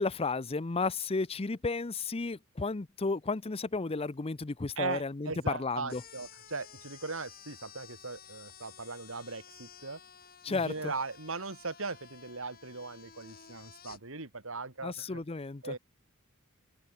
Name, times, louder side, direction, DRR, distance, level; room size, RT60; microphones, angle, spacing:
voice 1, 0.0-5.3 5.6-6.0 10.4-10.9 14.8-15.6, left 3 dB, 25° left, 0.6 m, -33 dB
voice 2, 4.8-10.0 10.5-15.2 15.6-15.8, right 3 dB, 65° right, 3.0 m, -39 dB
sound 1, 5.9-14.0, left 8 dB, 45° left, 4.4 m, -53 dB
open air
head